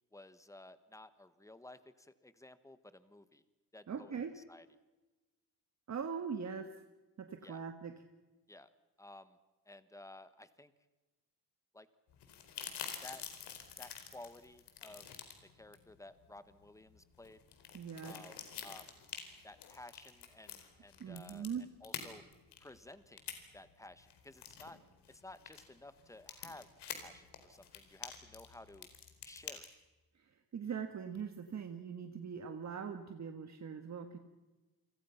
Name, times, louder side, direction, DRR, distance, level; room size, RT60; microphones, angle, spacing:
voice 1, 0.1-3.4 3.7-4.6 7.4-7.6 8.5-8.7 9.0-9.4 9.6-10.7 11.7-11.9 13.0-13.2 13.8-15.1 15.5-17.4 18.0-18.9 19.4-21.5 21.8-22.2 22.6-23.2 23.5-24.8 25.1-26.7 27.0-28.9 29.2-29.7, left 2 dB, 10° left, 13 dB, 1.4 m, -54 dB
voice 2, 3.9-4.3 5.9-6.8 7.2-7.9 17.7-18.2 21.0-21.6 30.2-34.2, right 6 dB, 45° right, 7 dB, 1.7 m, -41 dB
sound 1, 12.1-29.6, left 9 dB, 80° left, 4.3 m, -48 dB
29.5 x 25.5 x 5.9 m, 1.2 s
cardioid pair, 125°, 40 cm